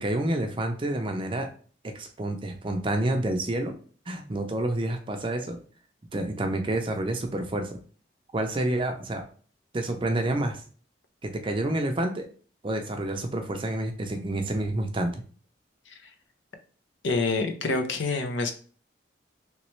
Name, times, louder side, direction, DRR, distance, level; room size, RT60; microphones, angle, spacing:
voice 1, 0.0-1.5 1.8-3.7 4.1-5.6 6.1-7.8 8.3-9.2 9.7-10.6 11.2-12.3 12.6-15.1, right 1 dB, 25° right, 5 dB, 0.5 m, -28 dB
voice 2, 17.0-18.5, left 3 dB, 75° left, 6 dB, 0.6 m, -26 dB
3.2 x 3.0 x 3.1 m, 0.42 s
head